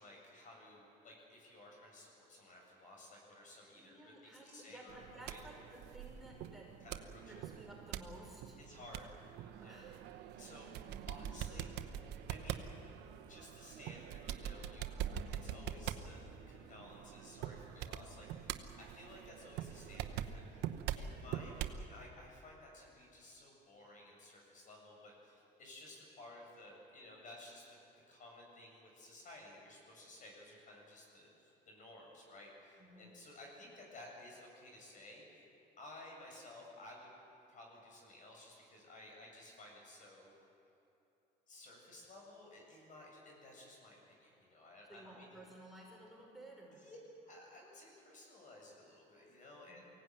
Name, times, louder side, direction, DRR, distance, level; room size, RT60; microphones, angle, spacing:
voice 1, 0.0-5.4 6.8-7.4 8.6-9.2 9.6-9.9 10.4-10.7 11.1-11.9 12.3-12.6 13.2-15.0 15.3-16.2 16.5-27.8 28.1-35.5 35.8-37.1 37.5-40.3 41.5-45.5 46.7-49.8, left 1 dB, 50° left, -1 dB, 7.6 m, -55 dB
voice 2, 3.8-6.8 7.3-8.6 9.6-10.0 32.8-33.2 44.9-46.8 49.7-49.9, right 1 dB, ahead, -4 dB, 5.5 m, -55 dB
sound 1, 4.9-21.9, right 10 dB, 90° right, 1.0 m, -44 dB
23.5 x 17.0 x 9.3 m, 2.8 s
cardioid pair, 110°, 17 cm